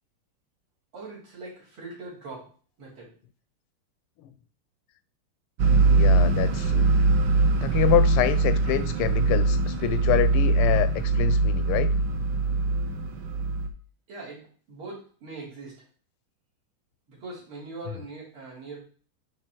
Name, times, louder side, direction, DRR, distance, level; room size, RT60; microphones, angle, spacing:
voice 1, 0.9-2.5 2.8-3.1 14.1-15.7 17.1-18.8, right 3 dB, 80° right, -6 dB, 4.0 m, -41 dB
sound 1, 5.6-13.7, right 3 dB, 65° right, 1.2 m, -22 dB
voice 2, 5.7-6.9 7.6-11.9, left 12 dB, 80° left, 14 dB, 1.4 m, -26 dB
9.6 x 3.3 x 4.4 m, 0.43 s
omnidirectional pair, 2.4 m